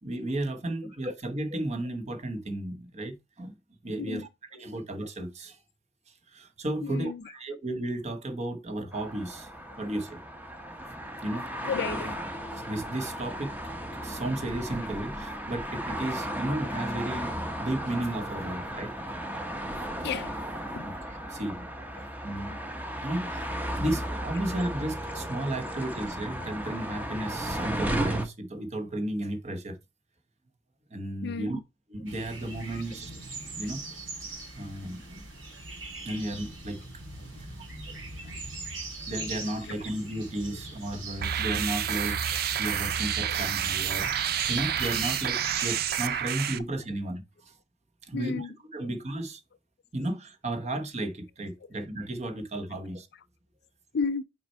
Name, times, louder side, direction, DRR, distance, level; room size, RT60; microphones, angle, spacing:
voice 1, 0.0-3.5 3.8-5.6 6.3-9.5 9.8-10.2 11.2-11.5 12.5-13.7 14.0-18.9 20.8-21.7 22.2-22.5 23.0-23.5 23.7-29.8 30.9-31.6 31.9-33.1 33.6-33.8 34.5-35.2 36.0-36.8 37.2-38.3 39.1-47.5 48.0-49.4 49.9-53.1, right 1 dB, 35° right, 1.0 m, -34 dB
voice 2, 6.8-7.2 11.6-12.2 20.0-20.3 20.7-20.9 21.9-22.1 31.2-31.6 32.7-32.8 39.6-39.8 43.2-43.3 48.1-48.5 48.8-48.9 53.9-54.2, left 5 dB, 55° left, 0.4 m, -33 dB
sound 1, 8.9-28.3, right 1 dB, 10° right, 0.8 m, -35 dB
sound 2, 32.1-46.2, right 2 dB, 85° right, 3.6 m, -40 dB
sound 3, 41.2-46.6, right 9 dB, 50° right, 0.4 m, -29 dB
5.8 x 4.4 x 4.4 m
head